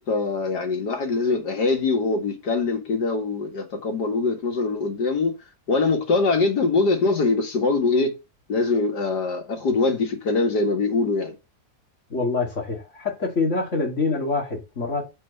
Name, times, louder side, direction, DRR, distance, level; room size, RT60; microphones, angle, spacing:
voice 1, 0.1-5.3 5.7-8.1 8.5-11.3, left 3 dB, 90° left, 2.5 m, -23 dB
voice 2, 12.1-15.1, left 3 dB, 45° left, 2.8 m, -25 dB
8.6 x 4.6 x 5.6 m
omnidirectional pair, 1.7 m